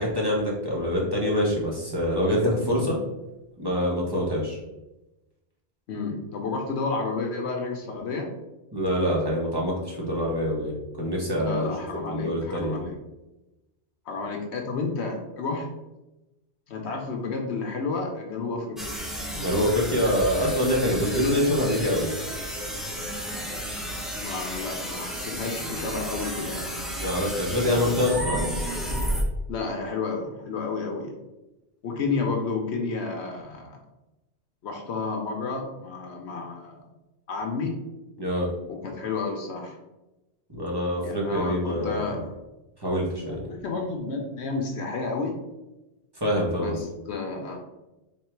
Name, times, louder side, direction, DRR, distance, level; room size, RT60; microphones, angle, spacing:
voice 1, 0.0-3.0 3.6-4.6 8.7-11.7 12.1-12.8 19.4-22.1 27.0-28.4 38.2-38.5 40.5-42.0 42.8-43.4 46.2-46.8, equal, 20° right, -4 dB, 1.2 m, -25 dB
voice 2, 5.9-8.3 11.3-12.9 14.1-15.7 16.7-19.0 24.1-26.7 29.5-31.1 31.8-33.8 34.6-36.8 37.3-37.8 38.7-39.8 41.0-42.2 43.2-45.4 46.5-47.6, left 4 dB, 75° left, 2 dB, 1.0 m, -31 dB
sound 1, 18.8-29.2, equal, ahead, 0.4 m, -32 dB
3.7 x 3.2 x 4.5 m, 1.0 s
omnidirectional pair, 1.1 m